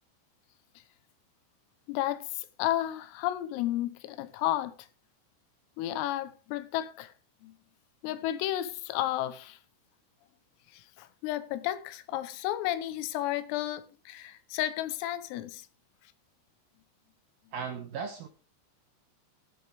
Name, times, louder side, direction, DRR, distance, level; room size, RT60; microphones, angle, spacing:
voice 1, 1.9-4.9 5.8-7.1 7.4-7.5 8.0-9.6 10.7-15.7, left 13 dB, 90° left, 3.6 m, -32 dB
voice 2, 17.5-18.3, right 6 dB, 75° right, 2.3 m, -36 dB
13.5 x 10.5 x 3.5 m
omnidirectional pair, 5.8 m